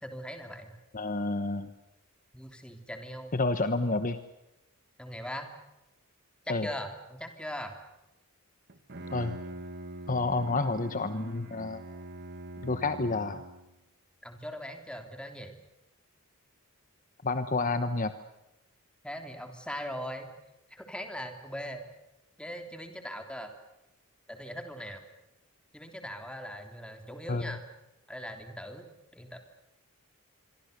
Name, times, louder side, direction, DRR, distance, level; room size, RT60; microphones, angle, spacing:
voice 1, 0.0-0.8 2.3-3.3 5.0-5.5 6.5-7.7 14.2-15.5 19.0-20.3 20.7-21.9 22.4-23.5 24.3-25.0 25.7-27.6 28.1-28.9 29.1-29.4, equal, 5° left, 5 dB, 3.3 m, -40 dB
voice 2, 0.9-1.7 3.3-4.2 6.5-6.7 9.1-9.4 10.1-11.8 12.6-13.4 17.2-18.1 27.3-27.4, left 3 dB, 35° left, 10 dB, 1.1 m, -29 dB
Bowed string instrument, 8.7-13.8, right 1 dB, 50° right, 1.8 m, -44 dB
26.5 x 24.0 x 6.8 m, 0.95 s
head